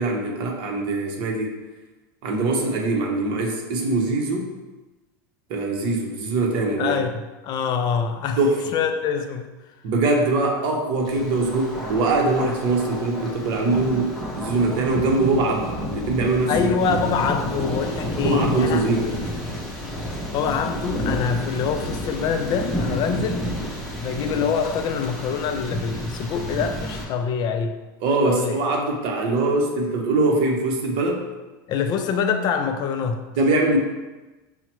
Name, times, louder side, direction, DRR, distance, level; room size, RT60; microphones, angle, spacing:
voice 1, 0.0-1.5 2.2-4.5 5.5-7.0 8.4-8.6 9.8-16.7 18.2-19.1 28.0-31.2 33.4-33.8, right 2 dB, 50° right, 1 dB, 0.8 m, -22 dB
voice 2, 6.8-7.1 7.4-8.4 8.7-9.5 16.5-19.1 20.3-23.4 24.0-27.7 28.2-28.6 31.7-33.2, left 6 dB, 40° left, 6 dB, 0.4 m, -25 dB
Thunder, 11.0-27.0, equal, ahead, 0.9 m, -30 dB
5.6 x 2.1 x 2.9 m, 1.1 s
supercardioid pair, 120°, 11 cm